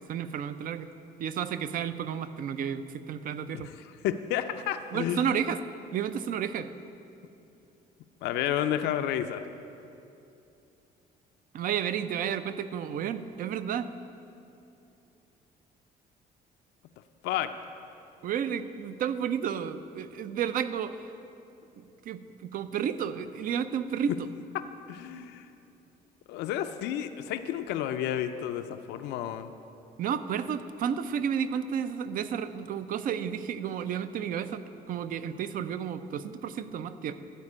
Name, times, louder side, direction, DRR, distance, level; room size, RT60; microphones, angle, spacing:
voice 1, 0.1-0.9 1.2-3.7 4.9-5.6 5.9-6.7 11.5-13.9 18.2-21.1 21.8-24.3 30.0-37.1, right 8 dB, 55° right, 12 dB, 0.5 m, -32 dB
voice 2, 4.0-5.3 8.2-9.4 17.2-17.5 24.9-25.5 26.3-29.5, left 11 dB, 85° left, 9 dB, 0.5 m, -31 dB
12.5 x 4.5 x 8.6 m, 2.8 s
cardioid pair, 110°, 17 cm